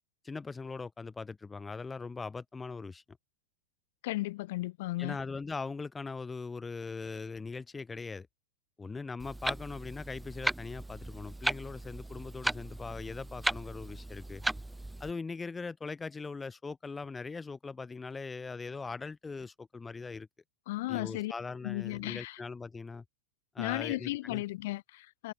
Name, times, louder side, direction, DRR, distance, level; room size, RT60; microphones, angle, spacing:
voice 1, 0.2-3.0 5.0-8.3 8.8-14.4 15.0-20.3 20.9-23.0 23.5-24.4, left 4 dB, 10° left, 4.5 m, -40 dB
voice 2, 4.0-5.2 20.7-21.3 21.6-22.4 23.6-25.3, left 18 dB, 50° left, 6.3 m, -35 dB
Clock, 9.2-15.1, right 2 dB, 5° right, 1.7 m, -36 dB
figure-of-eight pair, 90°, 0 cm